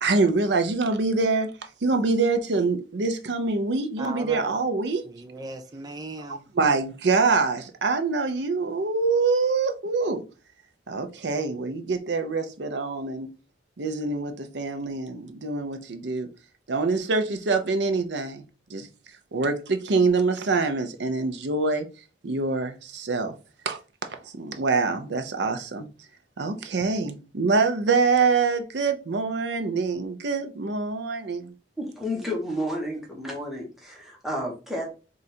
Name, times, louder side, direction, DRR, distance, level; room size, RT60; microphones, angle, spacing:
voice 1, 0.0-1.5 1.8-5.0 6.6-10.2 10.9-13.3 13.8-16.3 16.7-18.4 18.7-18.9 19.3-21.9 22.2-23.3 23.7-23.8 24.4-25.9 26.4-31.5, right 4 dB, 80° right, 0.6 m, -25 dB
voice 2, 4.0-4.6 5.0-6.5, right 2 dB, 20° right, 0.5 m, -37 dB
voice 3, 31.8-34.9, equal, ahead, 1.0 m, -31 dB
3.8 x 2.5 x 4.2 m
head